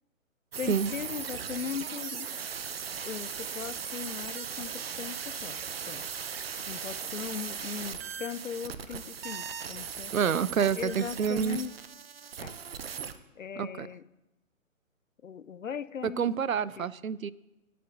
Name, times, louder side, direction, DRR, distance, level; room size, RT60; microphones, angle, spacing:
sound 1, 0.5-13.2, right 7 dB, 45° right, 0.7 m, -38 dB
voice 1, 0.6-2.3 3.0-5.6 5.9-6.0 6.7-10.1 10.8-11.8 12.4-12.6 13.4-14.0 15.2-16.4 16.8-16.9, left 7 dB, 70° left, 18 dB, 0.6 m, -39 dB
voice 2, 10.1-11.6 13.6-13.9 16.0-17.3, right 7 dB, 80° right, 18 dB, 0.6 m, -28 dB
20.5 x 11.0 x 2.6 m, 0.97 s
figure-of-eight pair, 140°, 40 cm